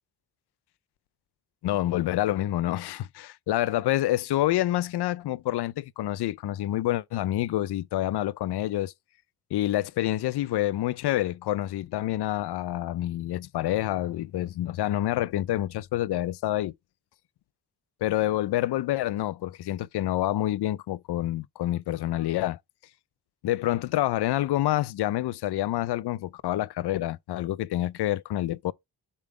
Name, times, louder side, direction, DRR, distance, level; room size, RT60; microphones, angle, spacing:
voice 1, 1.6-8.9 9.5-16.7 18.0-22.6 23.4-28.7, left 14 dB, 85° left, 0.5 m, -27 dB
7.0 x 3.7 x 4.8 m
cardioid pair, 100°, 38 cm